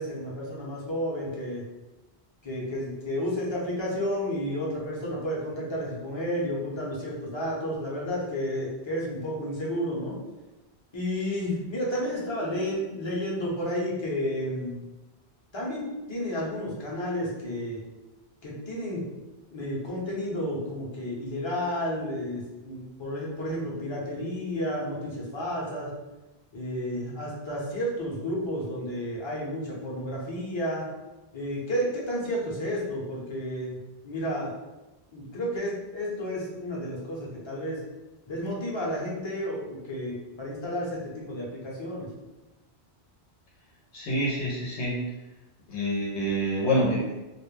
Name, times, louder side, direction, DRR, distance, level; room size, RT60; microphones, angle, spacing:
voice 1, 0.0-1.6 2.4-10.2 10.9-14.8 15.5-17.8 18.4-19.0 19.5-25.9 26.5-30.9 31.3-34.5 35.1-37.8 38.3-42.1, equal, 30° left, -5 dB, 0.6 m, -31 dB
voice 2, 43.9-45.0 45.7-47.1, equal, 90° left, -5 dB, 0.9 m, -27 dB
2.3 x 2.0 x 3.1 m, 1.1 s
omnidirectional pair, 1.1 m